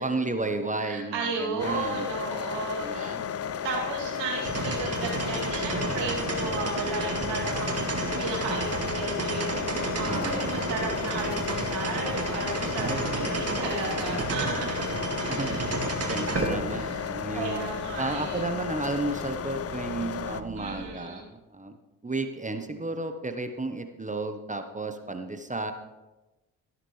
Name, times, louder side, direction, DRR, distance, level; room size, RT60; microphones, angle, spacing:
voice 1, 0.0-2.1 2.8-3.2 10.1-10.4 12.8-13.6 15.2-15.6 16.1-17.6 18.0-21.2 21.5-25.7, right 2 dB, 15° right, 7 dB, 1.2 m, -33 dB
voice 2, 0.8-3.1 3.6-14.9 15.2-15.7 16.7-17.1 17.3-18.4 20.6-21.2, right 4 dB, 70° right, -2 dB, 3.0 m, -34 dB
sound 1, 1.6-20.4, left 8 dB, 35° left, 0.6 m, -34 dB
sound 2, 4.4-20.9, right 3 dB, 35° right, 2.3 m, -32 dB
13.5 x 12.5 x 3.4 m, 1.1 s
hypercardioid pair, 45°, 45 cm